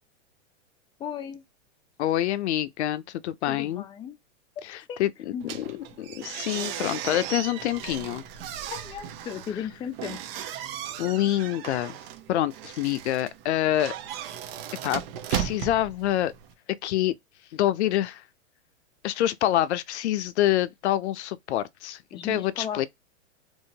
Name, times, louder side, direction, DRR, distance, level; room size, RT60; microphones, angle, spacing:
voice 1, 1.0-1.4 3.5-4.2 4.9-5.0 5.3-5.5 8.7-10.2 22.1-22.9, left 8 dB, 15° left, 0.5 m, -35 dB
voice 2, 2.0-3.8 4.6-5.1 5.5-8.2 11.0-12.0 12.3-14.0 14.8-15.0 15.3-16.3 16.8-17.1 17.5-18.2 19.0-22.9, left 13 dB, 65° left, 0.5 m, -26 dB
sound 1, 5.4-16.5, right 9 dB, 50° right, 0.9 m, -36 dB
3.0 x 2.7 x 2.7 m
hypercardioid pair, 125°, 36 cm